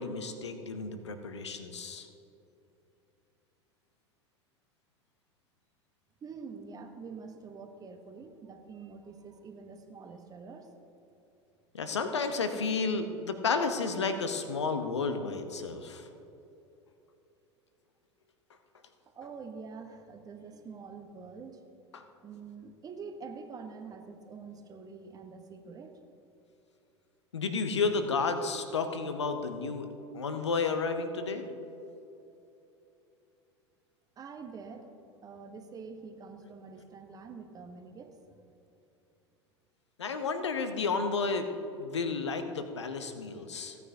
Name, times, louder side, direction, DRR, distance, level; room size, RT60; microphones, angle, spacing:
voice 1, 0.0-2.1 11.7-16.1 21.9-22.0 27.3-29.9 30.1-31.5 40.0-41.5 41.8-43.8, left 4 dB, 75° left, 8 dB, 0.8 m, -32 dB
voice 2, 6.2-10.7 19.1-21.6 22.2-26.0 34.2-34.9 35.2-38.2, right 5 dB, 25° right, 6 dB, 1.0 m, -46 dB
16.5 x 9.3 x 2.8 m, 2.9 s
figure-of-eight pair, 80°, 15 cm